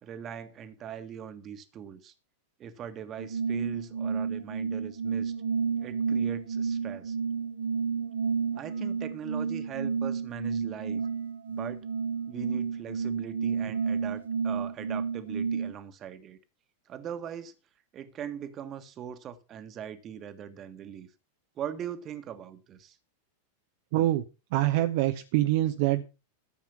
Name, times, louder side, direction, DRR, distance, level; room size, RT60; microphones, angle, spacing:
voice 1, 0.0-2.1 2.6-5.3 5.8-7.2 8.6-11.0 11.5-11.8 12.3-16.4 16.9-17.5 17.9-21.1 21.6-23.0, right 8 dB, 30° right, 1.6 m, -41 dB
sound 1, 3.2-15.7, right 6 dB, 70° right, 1.4 m, -31 dB
voice 2, 23.9-24.2 24.5-26.1, right 15 dB, 50° right, 0.9 m, -25 dB
13.5 x 7.3 x 5.7 m
figure-of-eight pair, 90°, 0 cm